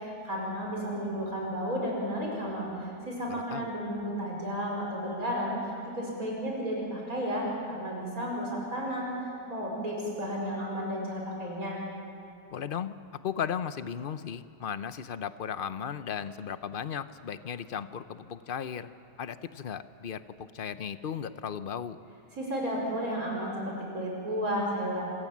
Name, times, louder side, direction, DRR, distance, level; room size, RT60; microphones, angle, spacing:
voice 1, 0.0-11.8 22.3-25.0, equal, 55° right, -2 dB, 5.4 m, -33 dB
voice 2, 3.3-3.7 12.5-12.9 13.2-18.9 19.2-22.0, left 8 dB, 50° left, 12 dB, 0.6 m, -36 dB
27.5 x 26.0 x 7.4 m, 2.5 s
omnidirectional pair, 1.8 m